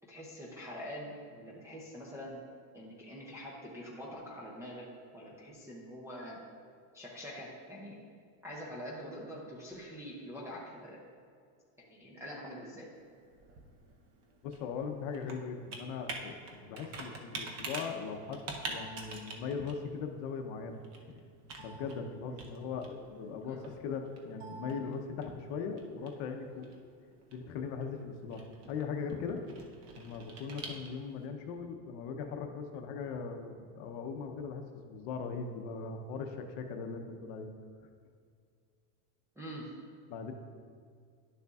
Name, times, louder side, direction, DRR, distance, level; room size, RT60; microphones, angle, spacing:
voice 1, 0.1-2.4 2.7-4.9 5.1-6.4 6.9-8.0 8.4-11.0 11.9-12.9 22.2-22.4 23.4-23.6 39.4-39.7, equal, 5° right, -5 dB, 0.5 m, -45 dB
Computer keyboard, 13.0-31.2, right 3 dB, 35° right, 0.8 m, -47 dB
voice 2, 14.4-20.8 21.1-21.2 21.6-26.7 27.3-29.6 30.0-37.5 40.1-40.3, left 5 dB, 60° left, 5 dB, 0.8 m, -39 dB
10.5 x 6.7 x 2.4 m, 2.2 s
cardioid pair, 165°, 44 cm